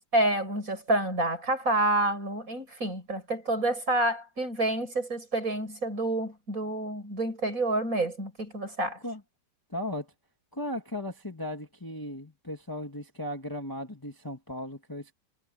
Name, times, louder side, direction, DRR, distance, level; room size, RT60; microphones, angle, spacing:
voice 1, 0.1-9.0, right 2 dB, 45° right, 7.7 m, -28 dB
voice 2, 9.7-10.1 10.5-15.1, left 1 dB, 10° left, 1.8 m, -36 dB
omnidirectional pair, 2.0 m